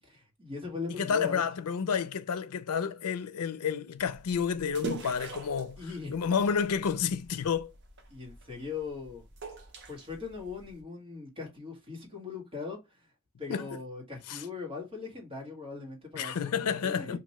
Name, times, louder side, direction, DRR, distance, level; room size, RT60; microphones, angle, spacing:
voice 1, 0.1-1.4 5.8-6.3 8.1-9.2 9.9-13.1 13.4-17.2, left 4 dB, 25° right, 1.4 m, -40 dB
voice 2, 1.0-5.8 6.1-7.7 13.5-13.7 14.3-14.4 16.2-17.2, left 6 dB, 85° left, 0.5 m, -30 dB
sound 1, 4.0-10.8, right 3 dB, 55° right, 0.9 m, -44 dB
3.0 x 2.5 x 4.2 m
head